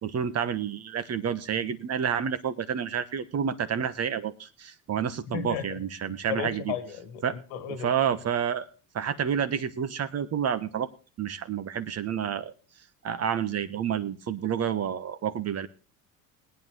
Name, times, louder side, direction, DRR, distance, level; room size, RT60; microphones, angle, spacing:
voice 1, 0.0-6.7 7.2-7.3 7.8-8.7 8.9-10.9 11.2-12.5 13.0-15.7, right 8 dB, 40° right, 12 dB, 1.2 m, -29 dB
voice 2, 5.3-5.8 6.1-7.9, left 9 dB, 85° left, 9 dB, 2.1 m, -35 dB
20.5 x 9.2 x 3.2 m, 0.34 s
supercardioid pair, 110°, 41 cm